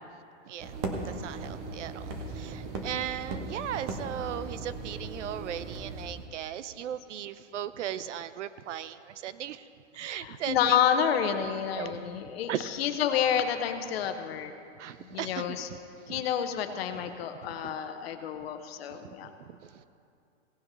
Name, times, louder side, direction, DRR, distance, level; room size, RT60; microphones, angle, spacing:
voice 1, 0.4-9.7 9.9-10.8 11.7-12.0 12.5-12.8 14.8-16.2 17.0-17.1 17.6-17.8 18.9-19.9, right 10 dB, 75° right, 14 dB, 0.7 m, -38 dB
sound 1, 0.6-6.3, right 3 dB, 10° right, 0.3 m, -38 dB
voice 2, 10.2-14.5 15.0-15.7 16.1-19.3, left 8 dB, 55° left, 8 dB, 1.0 m, -29 dB
17.0 x 7.0 x 5.4 m, 2.5 s
hypercardioid pair, 145°, 37 cm